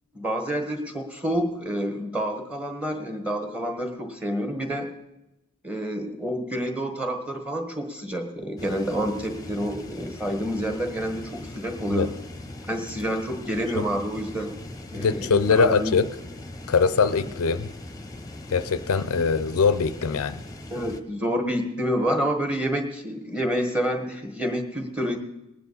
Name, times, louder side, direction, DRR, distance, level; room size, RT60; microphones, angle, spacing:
voice 1, 0.1-4.9 5.6-12.1 12.6-14.6 14.9-16.0 20.7-25.2, equal, 5° right, 4 dB, 1.4 m, -28 dB
sound 1, 8.6-21.0, left 1 dB, 15° left, 0.9 m, -40 dB
voice 2, 14.9-16.1 16.7-17.7 18.5-20.4, left 5 dB, 70° left, 13 dB, 0.5 m, -22 dB
19.5 x 9.3 x 4.0 m, 0.93 s
head